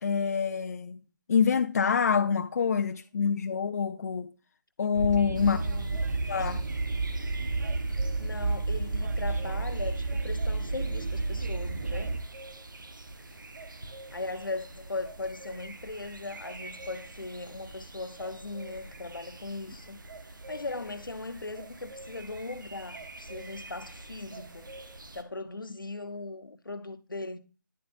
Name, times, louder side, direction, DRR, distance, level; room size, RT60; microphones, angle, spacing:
voice 1, 0.0-1.0 1.3-4.3 4.8-5.6 6.3-6.7, left 6 dB, 50° left, 0.6 m, -26 dB
Train, 4.9-12.2, right 3 dB, 55° right, 1.2 m, -31 dB
voice 2, 5.3-5.9 8.2-12.2 14.1-20.0 20.5-24.7 25.1-27.4, left 3 dB, 85° left, 1.2 m, -39 dB
sound 1, 5.3-25.2, right 2 dB, 75° right, 1.4 m, -46 dB
10.5 x 7.9 x 2.6 m
figure-of-eight pair, 150°, 11 cm